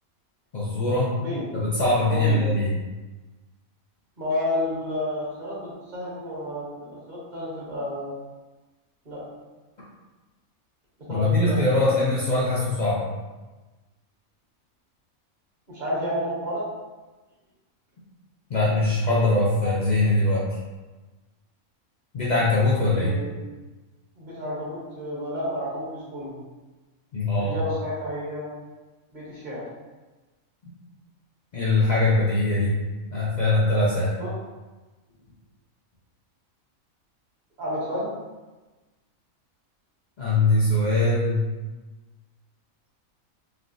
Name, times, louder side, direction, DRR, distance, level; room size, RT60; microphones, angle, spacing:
voice 1, 0.5-1.1 1.5-2.7 11.1-13.0 18.5-20.5 22.1-23.1 27.1-27.6 31.5-32.7 33.1-34.1 40.2-41.4, left 2 dB, 80° left, -7 dB, 0.4 m, -22 dB
voice 2, 4.2-8.1 9.0-9.2 11.1-11.6 15.7-16.6 22.9-23.4 24.2-26.4 27.4-28.5 29.1-29.7 34.2-34.3 37.6-38.1, left 1 dB, 35° right, -7 dB, 1.0 m, -31 dB
3.3 x 2.3 x 2.5 m, 1.2 s
omnidirectional pair, 1.5 m